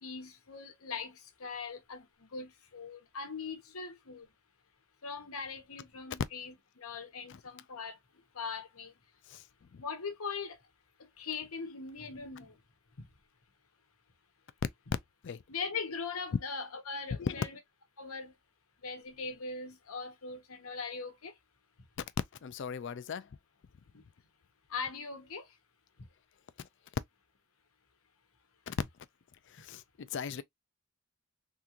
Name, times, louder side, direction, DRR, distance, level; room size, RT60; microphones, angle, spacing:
voice 1, 0.0-4.3 5.0-8.0 8.3-8.9 9.8-10.6 11.0-12.6 15.5-17.6 18.0-18.3 18.8-21.3 23.9-24.0 24.7-25.5, left 5 dB, 85° left, 1.1 m, -41 dB
voice 2, 22.4-23.3 26.6-26.7 28.7-28.8 29.5-30.4, left 6 dB, 55° left, 0.4 m, -38 dB
3.6 x 2.5 x 2.8 m
head